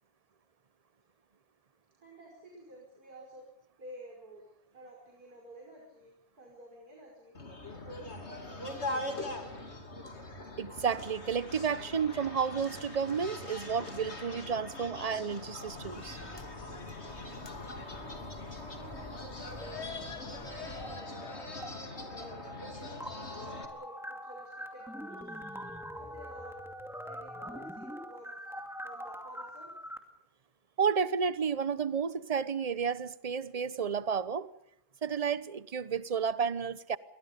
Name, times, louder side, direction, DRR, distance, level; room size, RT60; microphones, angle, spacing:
voice 1, 2.0-3.5 3.8-4.5 4.7-7.4 7.7-9.8 18.0-25.4 25.9-26.6 27.0-29.7, right 1 dB, 90° right, 6.0 m, -52 dB
sound 1, 7.3-23.7, left 2 dB, 45° left, 3.4 m, -42 dB
voice 2, 10.6-16.2 30.8-34.5 35.0-37.0, right 6 dB, 30° right, 0.9 m, -31 dB
sound 2, 15.7-21.0, left 2 dB, 15° left, 1.5 m, -50 dB
sound 3, 20.7-21.7 22.0-30.0, equal, ahead, 2.3 m, -43 dB
28.5 x 23.5 x 5.4 m
omnidirectional pair, 1.6 m